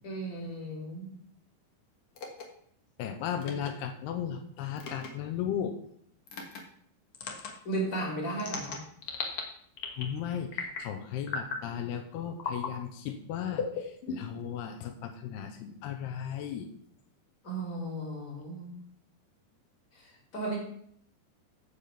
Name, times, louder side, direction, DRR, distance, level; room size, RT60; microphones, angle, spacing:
voice 1, 0.0-1.1 7.6-8.8 17.4-18.7 20.3-20.6, right 2 dB, 20° left, -2 dB, 3.3 m, -35 dB
sound 1, 2.1-2.4 3.4-3.7 4.8-5.1 6.3-6.6 7.1-7.5 8.4-9.4 9.8-10.1 10.5-10.9 11.3-11.6 12.4-12.7 13.5-14.4, left 5 dB, 55° left, 1.6 m, -36 dB
voice 2, 3.0-5.8 10.0-16.7, left 9 dB, 80° left, 6 dB, 2.8 m, -36 dB
15.0 x 5.1 x 5.8 m, 0.65 s
omnidirectional pair, 4.8 m